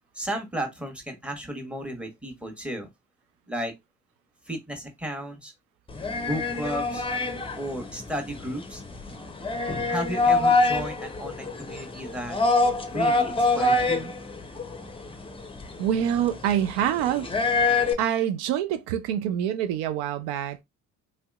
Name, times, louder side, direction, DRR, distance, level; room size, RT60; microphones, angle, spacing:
voice 1, 0.1-2.9 3.5-3.7 4.4-5.5 6.2-7.0 7.6-8.8 9.9-12.4 12.9-14.1, right 1 dB, 5° right, 1.1 m, -34 dB
sound 1, 5.9-17.9, left 3 dB, 15° left, 0.6 m, -26 dB
voice 2, 15.8-17.3 18.0-20.6, right 10 dB, 80° right, 0.5 m, -26 dB
3.1 x 2.8 x 2.3 m
supercardioid pair, 65°, 39 cm